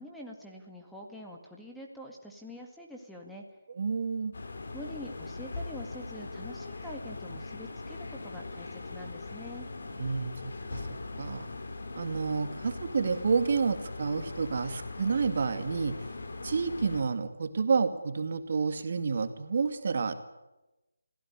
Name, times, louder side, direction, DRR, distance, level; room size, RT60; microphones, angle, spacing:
voice 1, 0.0-3.4 4.7-9.7, left 1 dB, ahead, -1 dB, 2.0 m, -45 dB
voice 2, 3.7-4.3 10.0-11.5 11.9-16.0 16.4-20.1, right 5 dB, 45° right, 8 dB, 2.3 m, -30 dB
sound 1, 4.3-17.0, left 3 dB, 60° left, 4.6 m, -40 dB
26.0 x 16.5 x 9.9 m, 1.0 s
figure-of-eight pair, 165°, 0 cm